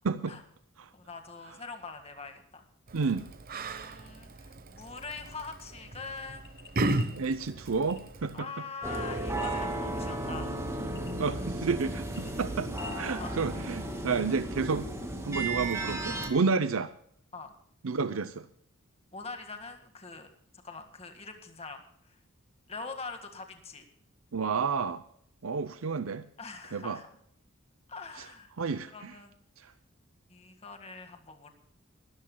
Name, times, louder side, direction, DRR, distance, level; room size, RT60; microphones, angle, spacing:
voice 1, 0.0-0.4 0.8-0.9 2.9-3.3 7.2-8.5 11.2-12.7 13.0-14.9 15.2-16.9 17.8-18.5 24.3-25.0 25.4-26.2 26.7-27.0 28.2-28.3 28.6-29.2 29.6-29.7, right 4 dB, 80° right, 11 dB, 0.6 m, -30 dB
voice 2, 0.9-2.7 3.5-6.5 8.3-10.5 13.2-13.3 17.3-17.5 19.1-20.3 20.6-22.1 22.7-23.8 26.4-27.1 27.9-28.5 28.9-29.3 30.3-31.5, left 4 dB, 30° left, 5 dB, 1.8 m, -43 dB
Yell, 2.9-8.4, right 2 dB, 45° right, 0.9 m, -35 dB
sound 1, 6.4-7.1 7.6-8.3 9.2-10.0 10.4-10.5 10.9-11.5 11.8-13.0, left 3 dB, 55° left, 2.5 m, -49 dB
sound 2, 8.8-16.3, right 1 dB, 15° right, 2.2 m, -34 dB
25.0 x 13.5 x 2.3 m, 0.66 s
head